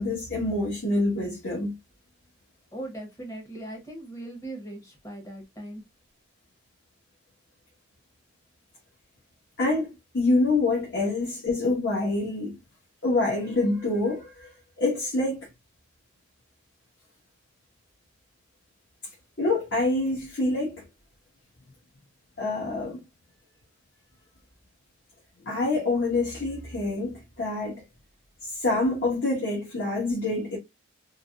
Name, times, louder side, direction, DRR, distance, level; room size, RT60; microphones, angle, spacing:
voice 1, 0.0-1.7 9.6-12.5 13.0-14.5 14.8-15.5 19.4-20.8 22.4-23.0 25.4-27.8 28.4-30.6, left 2 dB, 55° left, 1.3 m, -26 dB
voice 2, 2.7-5.8, right 1 dB, 15° left, 1.0 m, -39 dB
3.9 x 2.2 x 2.3 m
head